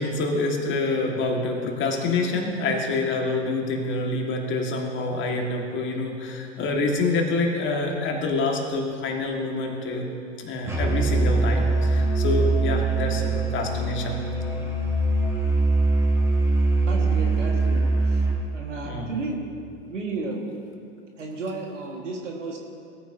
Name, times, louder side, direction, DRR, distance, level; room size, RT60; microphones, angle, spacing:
voice 1, 0.0-10.1 10.4-14.2 18.8-19.1, left 3 dB, 35° left, 1 dB, 1.8 m, -26 dB
Musical instrument, 10.7-18.5, right 2 dB, 10° right, 1.7 m, -22 dB
voice 2, 16.9-18.2 18.5-19.4 19.9-20.4 21.2-22.6, right 3 dB, 85° right, 0 dB, 1.8 m, -33 dB
18.0 x 9.2 x 2.8 m, 2.4 s
hypercardioid pair, 105°, 36 cm